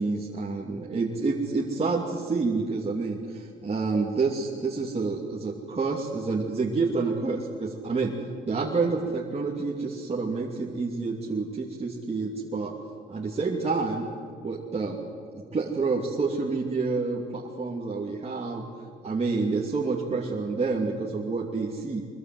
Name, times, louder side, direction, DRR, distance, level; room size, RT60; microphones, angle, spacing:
voice 1, 0.0-8.2 8.4-12.7 13.1-14.0 14.4-15.0 15.3-18.7 19.0-22.0, right 4 dB, 30° right, -2 dB, 2.8 m, -28 dB
24.0 x 23.0 x 7.9 m, 2.2 s
cardioid pair, 90°, 20 cm